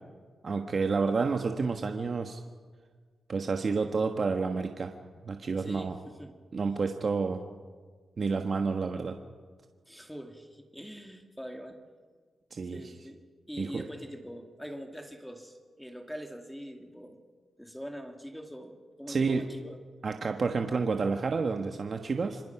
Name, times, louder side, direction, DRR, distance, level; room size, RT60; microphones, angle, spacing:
voice 1, 0.4-2.4 3.3-4.9 5.2-6.0 6.5-7.4 8.2-9.2 12.5-12.9 13.6-13.9 19.1-19.4 20.0-22.4, right 4 dB, 45° right, 5 dB, 1.4 m, -29 dB
voice 2, 5.6-6.3 9.9-11.8 12.7-13.2 13.5-17.2 17.6-19.8, equal, ahead, 4 dB, 2.2 m, -43 dB
26.5 x 26.0 x 5.9 m, 1.5 s
wide cardioid pair, 110°, 0 cm